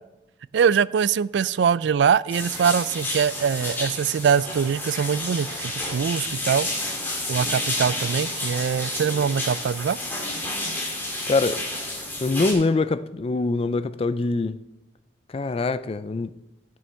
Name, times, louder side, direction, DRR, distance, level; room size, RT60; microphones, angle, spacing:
voice 1, 0.5-6.7 7.3-10.0, right 7 dB, 65° right, 0.3 m, -23 dB
sound 1, 2.3-12.5, left 1 dB, 10° left, 2.3 m, -30 dB
voice 2, 11.3-11.6 12.2-14.6 15.3-16.3, left 3 dB, 30° left, 0.3 m, -24 dB
14.0 x 6.3 x 4.6 m
head